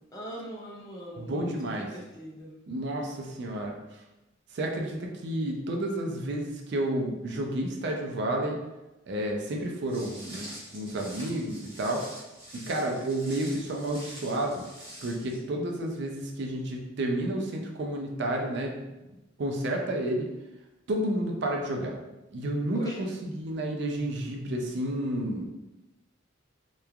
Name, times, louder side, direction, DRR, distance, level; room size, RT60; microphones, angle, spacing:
voice 1, 0.1-2.6 22.7-23.0, equal, 20° left, -3 dB, 0.4 m, -41 dB
voice 2, 1.2-1.9 2.7-4.0 4.5-8.6 9.1-12.0 12.5-14.6 15.0-18.8 19.4-20.3 20.9-22.0 22.3-25.5, right 1 dB, 55° right, 1 dB, 0.4 m, -31 dB
Walk footsteps, 9.9-15.4, right 1 dB, 25° right, 1.0 m, -46 dB
3.0 x 2.2 x 2.3 m, 1.0 s
head